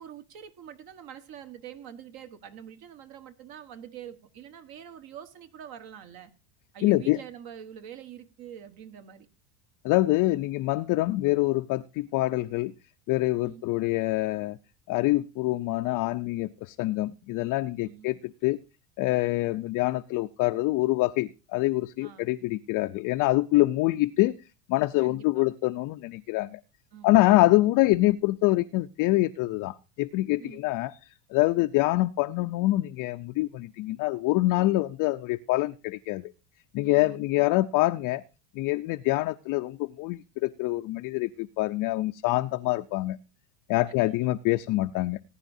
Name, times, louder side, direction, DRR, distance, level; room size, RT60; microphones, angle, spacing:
voice 1, 0.0-6.3 6.7-9.3 13.4-13.6 17.8-18.1 22.0-22.3 25.0-25.4 26.9-27.3 30.4-30.6 36.8-37.2 43.9-44.1, right 9 dB, 50° right, 1.4 m, -45 dB
voice 2, 6.8-7.2 9.8-12.7 13.1-14.6 14.9-18.6 19.0-24.3 24.7-26.6 27.0-31.0 31.3-36.3 36.7-38.2 38.6-43.2 43.7-45.2, left 18 dB, 45° left, 0.5 m, -25 dB
19.0 x 9.9 x 2.7 m
supercardioid pair, 130°, 47 cm